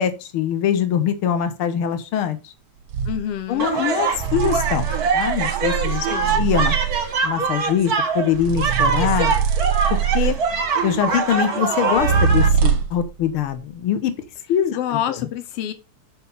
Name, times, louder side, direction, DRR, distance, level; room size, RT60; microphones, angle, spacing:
voice 1, 0.0-2.5 3.5-4.9 5.1-6.1 6.3-6.7 7.2-9.3 9.9-10.4 10.8-14.1 14.5-15.0, left 9 dB, 60° left, 1.4 m, -23 dB
sound 1, 2.9-3.2 4.1-7.1 8.3-10.6 11.9-13.1, right 7 dB, 65° right, 1.6 m, -22 dB
voice 2, 3.1-3.7 6.0-6.4 14.7-15.7, left 11 dB, 85° left, 1.3 m, -27 dB
sound 2, 3.6-12.5, right 4 dB, 40° right, 1.3 m, -23 dB
7.1 x 6.2 x 5.7 m
omnidirectional pair, 4.0 m